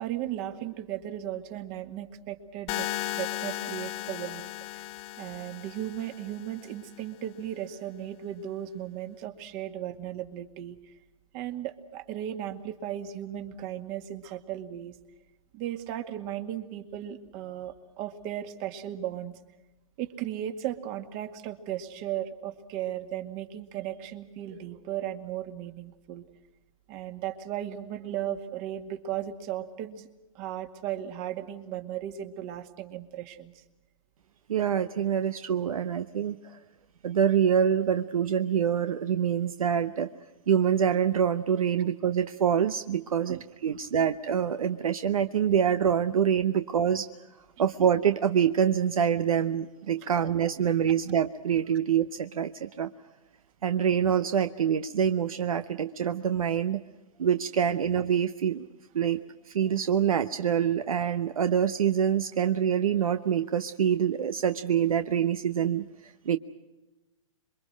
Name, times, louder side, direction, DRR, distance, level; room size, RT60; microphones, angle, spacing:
voice 1, 0.0-2.9 3.1-4.5 5.2-10.9 11.3-15.0 15.5-19.3 20.0-26.2 26.9-30.1 30.3-33.6 43.3-43.4, right 11 dB, 40° right, 8 dB, 2.1 m, -36 dB
sound 1, 2.7-6.7, left 15 dB, 35° left, 1.1 m, -36 dB
voice 2, 34.5-36.6 37.0-40.1 40.5-47.1 47.6-52.9 53.6-56.8 57.2-58.7 58.9-59.2 59.5-66.4, right 8 dB, 75° right, 10 dB, 1.0 m, -26 dB
27.5 x 23.0 x 6.4 m, 1.1 s
hypercardioid pair, 120°, 18 cm